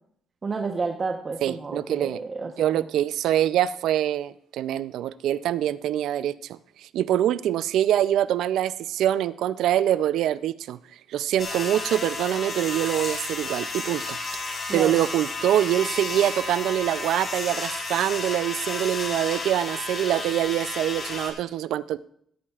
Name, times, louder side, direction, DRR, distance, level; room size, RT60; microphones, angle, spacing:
voice 1, 0.4-2.9 14.7-14.9, right 4 dB, 35° right, 4 dB, 0.9 m, -30 dB
voice 2, 1.4-2.2 2.6-6.6 6.9-10.8 11.1-14.2 14.7-22.1, right 12 dB, 80° right, 16 dB, 0.4 m, -24 dB
sound 1, 11.4-21.3, left 3 dB, 45° left, 3.9 m, -32 dB
16.5 x 13.0 x 2.4 m, 0.70 s
cardioid pair, 90°, 0 cm